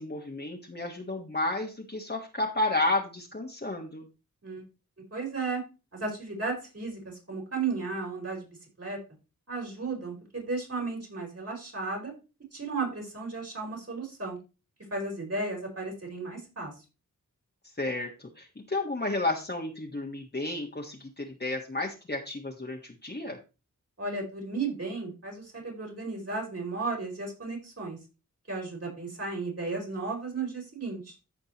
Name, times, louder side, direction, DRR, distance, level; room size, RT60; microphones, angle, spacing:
voice 1, 0.0-4.1 17.8-23.4, left 2 dB, 30° left, 0 dB, 1.5 m, -32 dB
voice 2, 5.1-5.6 5.9-8.5 8.8-9.0 9.5-12.1 12.5-14.4 14.9-16.7 24.0-28.0 28.5-31.1, right 3 dB, 50° right, -2 dB, 4.9 m, -34 dB
14.5 x 5.1 x 3.0 m, 0.30 s
cardioid pair, 50°, 32 cm